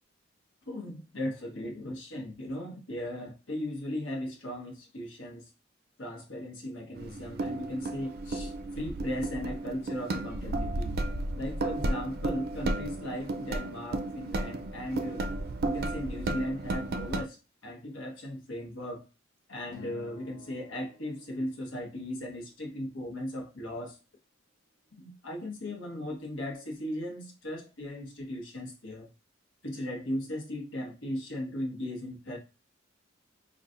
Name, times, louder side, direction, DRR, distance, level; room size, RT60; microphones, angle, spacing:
voice 1, 0.7-5.5 6.0-11.0 11.3-15.2 15.6-17.4 17.6-19.0 19.5-24.0 24.9-29.1 29.6-32.4, left 1 dB, 75° left, 1.1 m, -37 dB
sound 1, 6.9-17.2, right 2 dB, 50° right, 0.4 m, -33 dB
Acoustic guitar, 19.7-22.1, left 5 dB, 40° left, 1.0 m, -52 dB
5.4 x 2.3 x 2.4 m
head